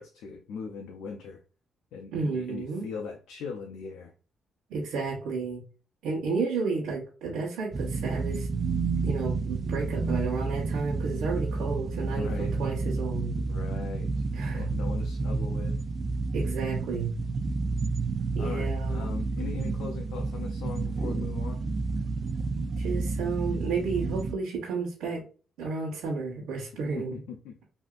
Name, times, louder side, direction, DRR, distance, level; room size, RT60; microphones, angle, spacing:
voice 1, 0.0-1.4 1.9-4.1 12.1-12.5 13.5-15.7 18.4-21.6 27.0-27.6, left 5 dB, 85° left, 2 dB, 0.5 m, -39 dB
voice 2, 2.1-2.9 4.7-5.6 6.0-8.5 9.0-13.4 14.3-14.7 16.3-17.1 18.3-19.1 22.8-25.2 25.6-27.2, right 4 dB, 85° right, -3 dB, 1.0 m, -32 dB
sound 1, 7.7-24.3, right 3 dB, 40° right, 0.3 m, -30 dB
3.2 x 2.7 x 2.4 m, 0.36 s
cardioid pair, 90°, 0 cm